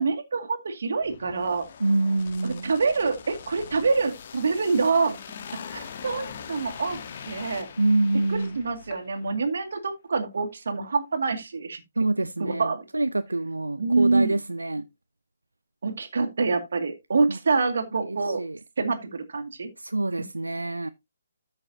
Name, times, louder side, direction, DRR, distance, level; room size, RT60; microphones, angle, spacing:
voice 1, 0.0-1.7 2.4-5.2 5.7-7.0 7.3-7.7 8.3-11.8 12.4-12.8 13.8-14.3 15.8-18.4 18.8-19.7, right 4 dB, 60° right, 2.2 m, -26 dB
sound 1, 1.0-9.4 9.7-9.9, left 7 dB, 45° left, 1.3 m, -42 dB
voice 2, 1.8-2.7 7.8-8.6 12.0-14.9 17.3-17.4 17.9-18.6 19.8-20.9, right 2 dB, 85° right, 0.5 m, -26 dB
13.5 x 6.4 x 2.8 m
figure-of-eight pair, 145°, 0 cm